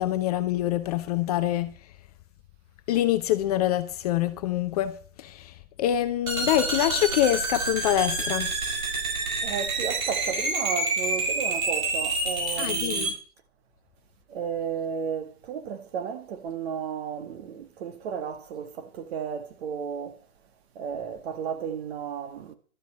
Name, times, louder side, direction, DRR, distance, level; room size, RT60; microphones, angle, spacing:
voice 1, 0.0-1.7 2.9-5.5 5.8-8.5 12.6-13.1, left 12 dB, 25° left, 0.7 m, -25 dB
sound 1, 6.3-13.1, right 3 dB, 65° right, 5.1 m, -28 dB
voice 2, 9.4-13.2 14.3-20.2 20.8-22.5, right 7 dB, 45° right, 2.1 m, -33 dB
12.5 x 8.2 x 7.6 m
hypercardioid pair, 130°, 44 cm